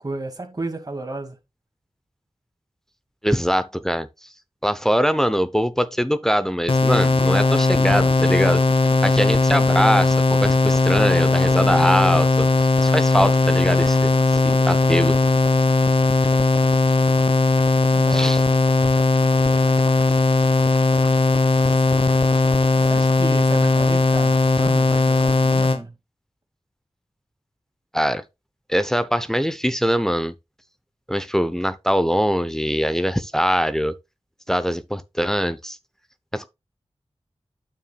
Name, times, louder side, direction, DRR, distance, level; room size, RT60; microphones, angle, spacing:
voice 1, 0.0-1.4 17.9-18.4 21.6-21.8 22.7-26.0, right 2 dB, 35° right, 2.1 m, -33 dB
voice 2, 3.2-4.1 4.6-8.6 9.0-15.2 18.1-18.4 27.9-28.2 28.7-30.3 31.1-33.9 34.5-35.8 36.3-36.5, equal, 5° left, 0.7 m, -22 dB
sound 1, 6.7-25.8, left 3 dB, 55° left, 1.0 m, -18 dB
9.0 x 7.1 x 2.3 m
wide cardioid pair, 50°, 11 cm